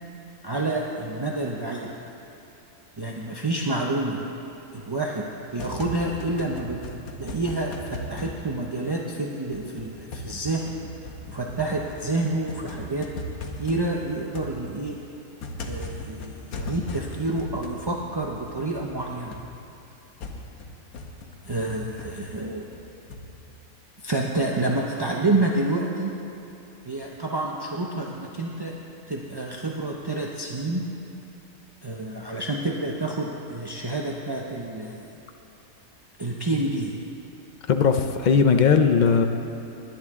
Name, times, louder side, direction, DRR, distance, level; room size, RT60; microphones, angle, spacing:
voice 1, 0.4-1.9 3.0-4.2 4.7-5.3 5.5-6.8 7.2-10.6 11.3-13.1 13.6-15.0 15.6-19.3 21.5-22.7 24.0-26.1 26.9-28.7 29.1-30.8 31.8-35.1 36.2-36.9, right 2 dB, 30° right, -1 dB, 0.5 m, -28 dB
sound 1, 5.4-9.2 9.5-23.5, left 2 dB, 85° left, 1.4 m, -38 dB
voice 2, 37.7-39.3, left 6 dB, 55° left, 6 dB, 0.5 m, -18 dB
20.5 x 9.5 x 3.6 m, 2.8 s
omnidirectional pair, 1.5 m